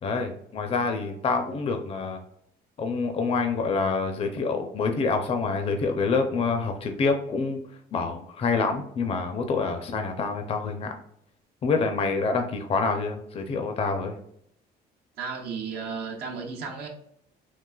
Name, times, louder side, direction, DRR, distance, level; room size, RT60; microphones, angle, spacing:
voice 1, 0.0-2.2 2.8-7.6 7.9-10.9 11.6-14.2, left 4 dB, 35° left, 0.5 m, -27 dB
voice 2, 15.2-16.9, right 5 dB, 70° right, 0.7 m, -34 dB
3.8 x 2.4 x 2.3 m
cardioid pair, 110°, 17 cm